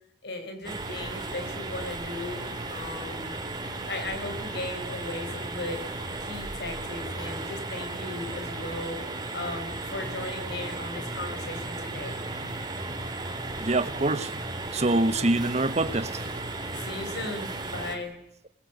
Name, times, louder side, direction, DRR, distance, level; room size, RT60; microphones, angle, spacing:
voice 1, 0.2-3.4 3.8-5.8 6.2-9.0 9.3-12.2 16.7-18.1, left 2 dB, 65° left, 7 dB, 4.5 m, -37 dB
sound 1, 0.6-18.0, right 2 dB, 25° right, 3.5 m, -35 dB
sound 2, 10.0-17.6, equal, 5° left, 4.8 m, -45 dB
voice 2, 13.6-14.3 14.7-16.1, right 2 dB, 40° right, 13 dB, 1.1 m, -25 dB
24.5 x 20.5 x 8.2 m, 0.78 s
head